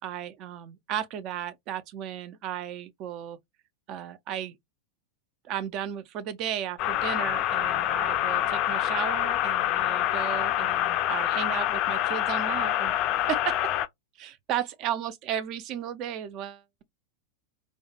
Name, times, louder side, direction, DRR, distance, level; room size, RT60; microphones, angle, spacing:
voice 1, 0.0-3.4 3.9-4.6 5.4-12.9 13.3-13.7 14.2-16.8, right 10 dB, 40° right, 0.4 m, -34 dB
sound 1, 6.8-13.9, left 13 dB, 40° left, 0.3 m, -26 dB
2.5 x 2.1 x 2.8 m
figure-of-eight pair, 90°, 0 cm